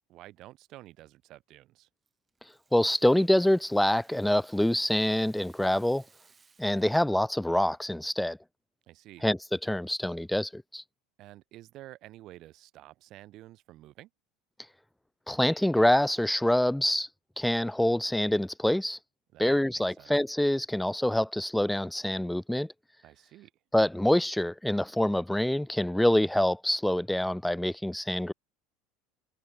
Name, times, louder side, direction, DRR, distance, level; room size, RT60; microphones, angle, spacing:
voice 1, 0.1-1.9 8.9-9.3 11.2-14.1 19.3-20.1 23.0-23.5, right 15 dB, 55° right, 2.6 m, -50 dB
Rattle (instrument), 2.1-7.1, right 5 dB, 25° right, 2.8 m, -63 dB
voice 2, 2.7-6.0 6.6-8.4 9.2-10.8 15.3-17.1 17.4-19.0 19.4-22.7 23.7-28.3, left 1 dB, 5° left, 0.5 m, -26 dB
hypercardioid pair, 85°, 0 cm